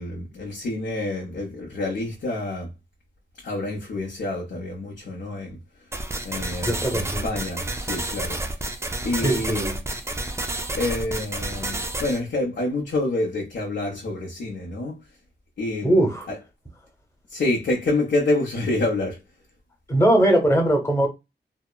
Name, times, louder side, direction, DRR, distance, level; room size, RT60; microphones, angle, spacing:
voice 1, 0.0-2.7 3.4-5.6 6.2-8.4 9.0-9.8 10.7-15.0 15.6-16.4 17.3-19.2, left 2 dB, 70° left, 0.7 m, -27 dB
sound 1, 5.9-12.2, right 2 dB, 15° right, 0.4 m, -30 dB
voice 2, 6.6-7.2 9.2-9.7 15.8-16.3 19.9-21.1, right 1 dB, 15° left, 0.9 m, -20 dB
2.7 x 2.0 x 2.2 m
wide cardioid pair, 80°, 19 cm